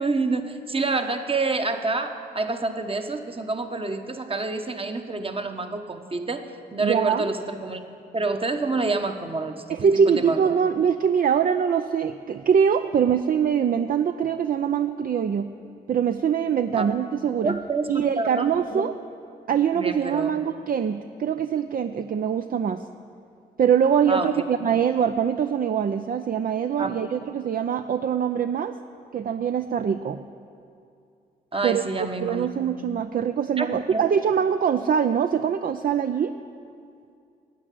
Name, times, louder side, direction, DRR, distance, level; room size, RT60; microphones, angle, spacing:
voice 1, 0.0-6.4 6.7-7.8 8.1-10.4 16.7-16.9 17.4-18.9 19.7-20.3 24.1-24.3 26.8-26.9 31.5-32.5 33.6-34.1, right 3 dB, 30° right, 7 dB, 1.2 m, -28 dB
voice 2, 6.8-7.3 9.7-15.5 15.9-17.6 17.9-18.9 19.5-22.8 23.6-28.7 29.1-30.2 31.6-31.8 32.2-36.4, right 7 dB, 50° right, 9 dB, 0.5 m, -23 dB
9.9 x 8.2 x 9.3 m, 2.4 s
supercardioid pair, 45°, 19 cm